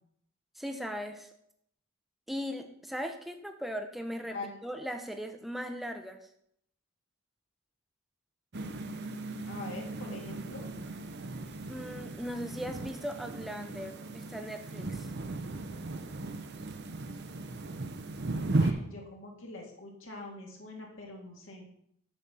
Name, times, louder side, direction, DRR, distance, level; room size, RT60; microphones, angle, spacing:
voice 1, 0.6-1.3 2.3-6.3 11.7-15.1, equal, ahead, 5 dB, 0.6 m, -38 dB
sound 1, 8.5-18.7, right 2 dB, 50° right, 0.7 m, -36 dB
voice 2, 9.5-10.7 18.6-21.7, left 2 dB, 60° left, 0 dB, 2.0 m, -43 dB
8.4 x 4.1 x 7.0 m, 0.71 s
head